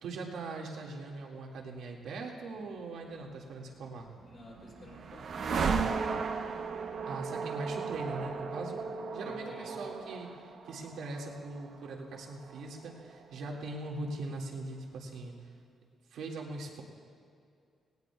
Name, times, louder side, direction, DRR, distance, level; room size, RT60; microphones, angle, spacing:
voice 1, 0.0-4.1 7.1-8.9 9.1-10.3 10.6-15.4 16.1-16.8, right 2 dB, 80° right, -1 dB, 2.1 m, -41 dB
sound 1, 4.0-14.1, right 5 dB, 45° right, 0.8 m, -36 dB
voice 2, 4.3-6.1 9.2-9.8, left 1 dB, 35° left, -3 dB, 3.6 m, -51 dB
18.5 x 18.5 x 2.4 m, 2.3 s
cardioid pair, 175°, 0 cm